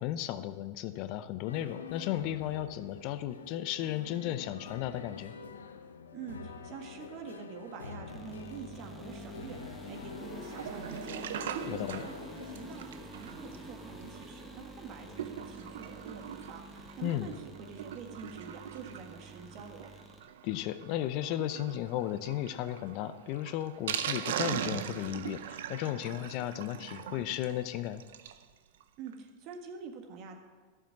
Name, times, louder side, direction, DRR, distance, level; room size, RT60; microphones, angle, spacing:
voice 1, 0.0-5.3 11.7-12.0 17.0-17.3 20.4-28.0, left 13 dB, 50° left, 13 dB, 0.6 m, -35 dB
sound 1, 1.5-12.8, left 5 dB, 85° left, 0.7 m, -46 dB
voice 2, 6.1-11.3 11.5-12.1 12.4-19.9 29.0-30.4, right 6 dB, 50° right, 3 dB, 1.8 m, -46 dB
sound 2, 8.1-20.2, right 1 dB, ahead, 1.6 m, -48 dB
Sink (filling or washing), 10.4-28.5 28.8-28.9 29.1-29.2 29.5-29.6, right 9 dB, 70° right, 0.6 m, -41 dB
12.5 x 7.3 x 6.0 m, 1.4 s
hypercardioid pair, 95°, 0 cm